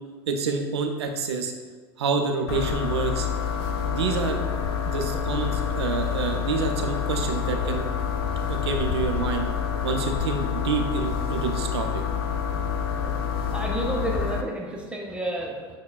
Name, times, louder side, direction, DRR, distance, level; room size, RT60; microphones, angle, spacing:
voice 1, 0.3-1.5 2.0-3.3 3.8-4.5 4.9-7.8 8.5-9.5 9.8-12.0 12.3-12.7, right 4 dB, 85° right, 5 dB, 0.4 m, -28 dB
sound 1, 2.5-14.4, left 7 dB, 75° left, 0.4 m, -27 dB
voice 2, 4.9-5.2 13.0-13.1 13.4-15.8, right 1 dB, 10° right, -2 dB, 0.6 m, -31 dB
6.1 x 2.1 x 2.2 m, 1.4 s
hypercardioid pair, 85°, 13 cm